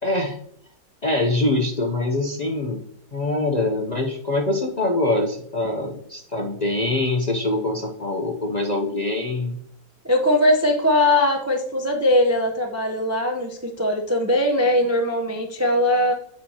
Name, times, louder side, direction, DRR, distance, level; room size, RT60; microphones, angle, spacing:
voice 1, 0.0-0.4 1.0-2.8 3.1-9.6, left 2 dB, 45° left, 1 dB, 0.5 m, -24 dB
voice 2, 10.0-16.1, left 1 dB, 25° right, 2 dB, 0.3 m, -20 dB
7.5 x 5.7 x 2.8 m, 0.67 s
omnidirectional pair, 1.6 m